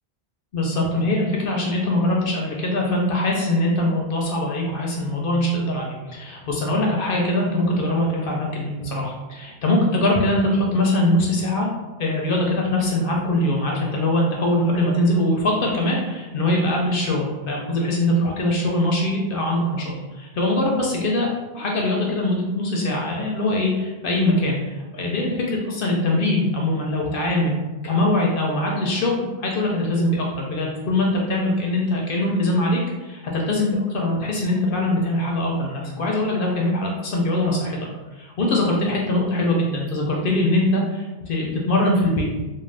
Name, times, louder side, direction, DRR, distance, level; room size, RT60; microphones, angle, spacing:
voice 1, 0.5-11.7 12.0-21.3 21.5-37.8 38.1-42.3, left 1 dB, 65° left, -1 dB, 0.7 m, -22 dB
2.5 x 2.2 x 3.2 m, 1.1 s
omnidirectional pair, 1.1 m